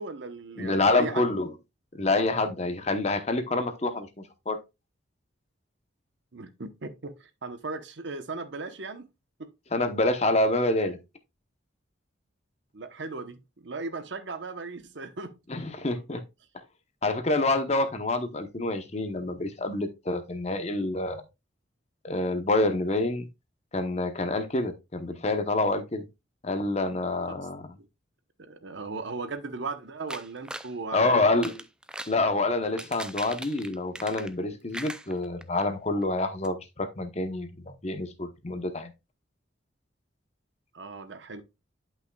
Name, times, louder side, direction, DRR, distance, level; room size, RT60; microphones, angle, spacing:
voice 1, 0.0-1.3 6.3-9.1 9.4-9.5 12.7-15.4 27.3-27.4 27.8-27.9 28.4-31.5 40.7-41.4, right 3 dB, 70° right, 0.9 m, -37 dB
voice 2, 0.6-1.5 1.9-4.1 4.5-4.6 9.7-11.0 15.5-16.2 17.0-21.2 22.0-23.3 23.7-26.0 26.4-27.7 30.9-31.5 32.1-38.9, left 2 dB, 35° left, 0.8 m, -27 dB
sound 1, 30.1-30.7 31.3-32.2 32.6-34.4 34.7-35.6 36.0-36.1 36.4-36.5, right 1 dB, 5° right, 0.3 m, -40 dB
10.5 x 5.7 x 2.3 m
head